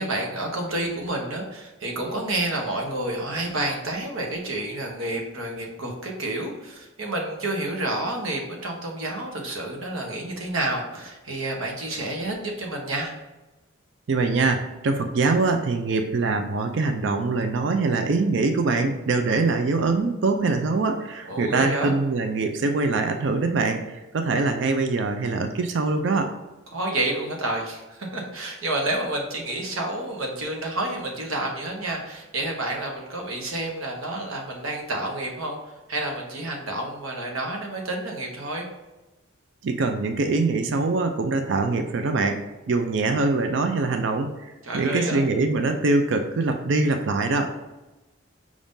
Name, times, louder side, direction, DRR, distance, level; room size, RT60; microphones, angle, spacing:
voice 1, 0.0-13.1 21.3-21.9 26.7-38.7 44.6-45.2, right 1 dB, 85° right, 1 dB, 1.0 m, -29 dB
voice 2, 14.1-26.3 39.6-42.4 42.7-44.3 44.7-47.5, right 3 dB, 60° right, 5 dB, 0.4 m, -23 dB
4.8 x 3.6 x 2.6 m, 1.1 s
head